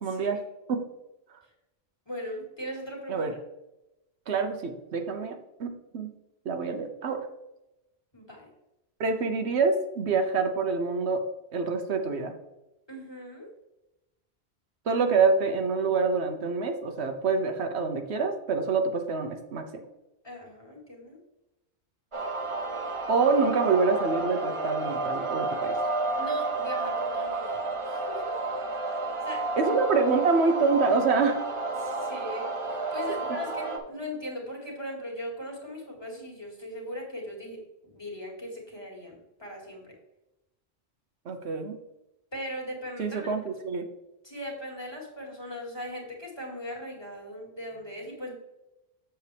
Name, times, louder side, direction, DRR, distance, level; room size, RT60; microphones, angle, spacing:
voice 1, 0.0-0.4 0.7-0.8 3.1-3.3 4.3-6.1 6.4-7.2 9.0-11.2 11.5-12.3 14.9-19.8 23.1-25.7 29.6-31.4 41.3-41.8 43.0-43.9, right 4 dB, 85° right, 6 dB, 1.1 m, -26 dB
voice 2, 2.1-3.3 8.1-8.5 12.9-13.5 20.2-21.2 26.2-28.4 29.2-29.8 31.8-39.9 42.3-43.3 44.2-48.3, equal, 25° left, -2 dB, 2.1 m, -39 dB
sound 1, 22.1-33.8, right 3 dB, 30° right, 0.9 m, -31 dB
7.5 x 6.9 x 3.4 m, 0.93 s
omnidirectional pair, 1.1 m